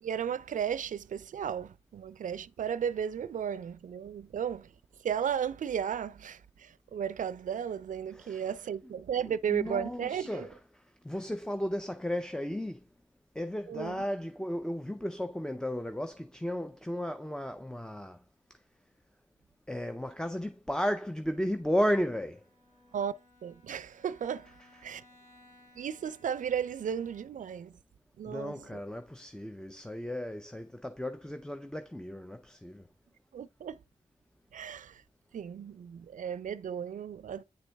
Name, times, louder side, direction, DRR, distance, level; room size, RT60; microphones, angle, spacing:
voice 1, 0.0-4.7 5.0-10.5 13.7-14.0 22.9-23.1 23.4-24.5 24.8-25.0 25.8-27.7 28.2-28.7 33.3-33.8 34.5-35.0 35.3-37.4, right 8 dB, 80° right, 0.4 m, -34 dB
voice 2, 8.1-8.5 9.3-12.9 13.3-18.2 19.7-22.4 28.3-32.9, equal, 5° left, 0.5 m, -34 dB
Bowed string instrument, 22.4-27.6, left 2 dB, 75° left, 4.1 m, -61 dB
9.0 x 4.0 x 3.4 m
cardioid pair, 70°, 13 cm